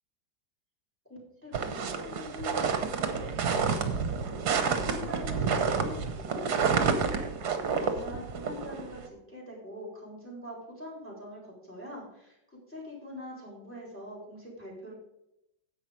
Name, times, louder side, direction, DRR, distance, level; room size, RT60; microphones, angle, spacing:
voice 1, 1.1-4.2 4.5-6.8 7.8-14.9, left 1 dB, 5° left, -2 dB, 3.8 m, -43 dB
sound 1, 1.5-9.1, right 5 dB, 60° right, 1.5 m, -29 dB
10.5 x 7.9 x 5.1 m, 0.83 s
omnidirectional pair, 2.1 m